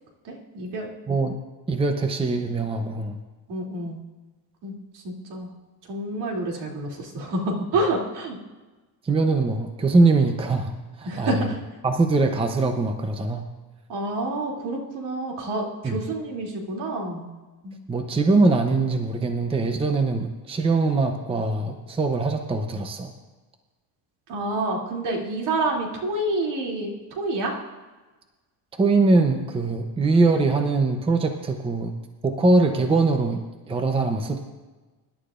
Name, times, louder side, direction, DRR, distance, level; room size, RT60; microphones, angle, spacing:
voice 1, 0.2-0.9 3.5-4.0 4.6-5.5 5.9-8.4 11.0-11.6 13.9-17.3 17.6-17.8 24.3-27.5, right 2 dB, 65° right, -1 dB, 2.9 m, -28 dB
voice 2, 1.1-1.4 1.7-3.2 9.0-11.5 11.8-13.4 15.8-16.0 17.9-23.1 28.7-31.9 32.2-34.4, right 3 dB, 15° right, 5 dB, 0.7 m, -22 dB
24.0 x 11.5 x 2.5 m, 1.2 s
cardioid pair, 165°, 43 cm